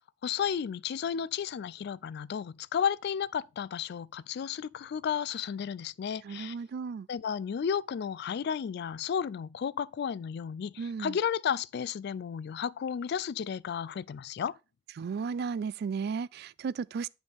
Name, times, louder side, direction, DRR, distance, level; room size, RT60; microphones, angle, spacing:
voice 1, 0.2-6.6 7.1-14.6, left 7 dB, 55° left, 0.3 m, -33 dB
voice 2, 6.2-7.1 10.8-11.2 15.0-17.1, right 5 dB, 55° right, 0.3 m, -34 dB
9.8 x 5.3 x 3.5 m
head